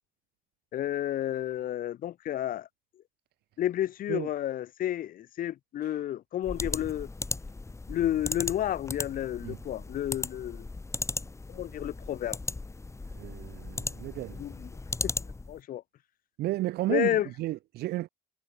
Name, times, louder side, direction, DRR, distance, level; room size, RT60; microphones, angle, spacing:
voice 1, 0.7-2.7 3.6-7.1 7.9-10.7 11.5-12.4 14.3-14.7 15.0-15.8 16.9-17.3, left 12 dB, 55° left, 1.0 m, -31 dB
sound 1, 6.4-15.6, left 3 dB, 15° left, 3.6 m, -37 dB
voice 2, 13.1-14.4 16.4-18.1, right 16 dB, 75° right, 0.8 m, -33 dB
cardioid pair, 110°, 17 cm